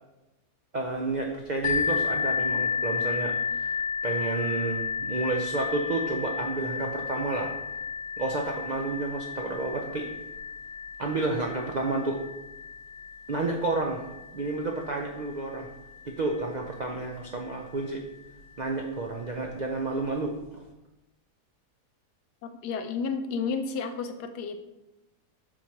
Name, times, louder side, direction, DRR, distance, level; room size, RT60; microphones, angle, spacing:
voice 1, 0.7-7.5 8.2-10.1 11.0-12.2 13.3-14.0 14.3-15.7 16.0-18.0 18.6-20.3, right 3 dB, 85° right, 1 dB, 0.4 m, -30 dB
sound 1, 1.6-17.2 17.9-18.0 18.6-18.7, left 6 dB, 50° left, 1.0 m, -33 dB
voice 2, 22.4-24.6, left 5 dB, 85° left, 8 dB, 1.3 m, -32 dB
7.5 x 3.2 x 5.7 m, 0.98 s
omnidirectional pair, 1.7 m